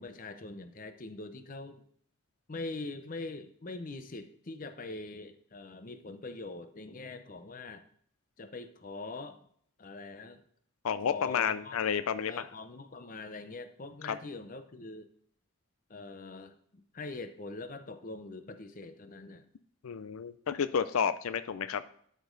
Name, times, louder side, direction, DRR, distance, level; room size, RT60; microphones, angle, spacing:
voice 1, 0.0-1.8 2.5-7.8 8.4-9.4 9.8-10.4 11.1-11.8 12.3-15.1 15.9-19.5, left 3 dB, 40° left, 9 dB, 0.7 m, -43 dB
voice 2, 10.8-12.3 14.0-14.2 19.8-21.8, left 7 dB, 90° left, 13 dB, 0.5 m, -31 dB
12.0 x 5.2 x 3.9 m, 0.62 s
head